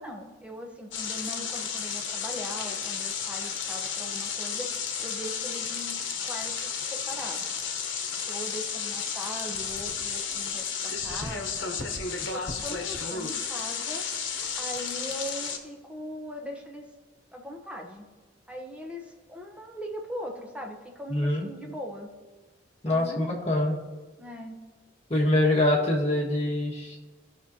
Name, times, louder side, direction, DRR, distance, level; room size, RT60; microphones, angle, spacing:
voice 1, 0.0-4.7 5.0-7.7 8.2-11.7 12.3-14.0 14.6-16.9 17.3-18.1 18.5-22.1 22.9-23.4 24.2-24.6, equal, 5° right, 1 dB, 0.9 m, -40 dB
sound 1, 0.9-15.6, left 6 dB, 85° left, 1.0 m, -32 dB
voice 2, 21.1-21.5 22.8-23.8 25.1-27.0, left 1 dB, 35° left, -4 dB, 1.6 m, -24 dB
16.0 x 6.1 x 2.8 m, 1.3 s
head